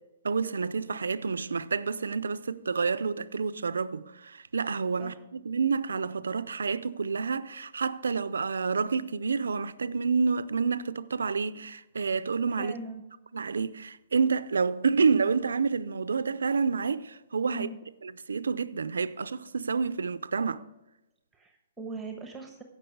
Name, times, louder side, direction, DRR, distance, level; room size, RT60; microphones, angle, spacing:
voice 1, 0.2-12.7 13.3-17.7 18.0-20.6, right 5 dB, 90° right, 0.5 m, -29 dB
voice 2, 12.6-13.0 17.5-17.8 21.3-22.6, right 3 dB, 10° right, 1.1 m, -40 dB
16.0 x 5.9 x 4.7 m
hypercardioid pair, 140°, 0 cm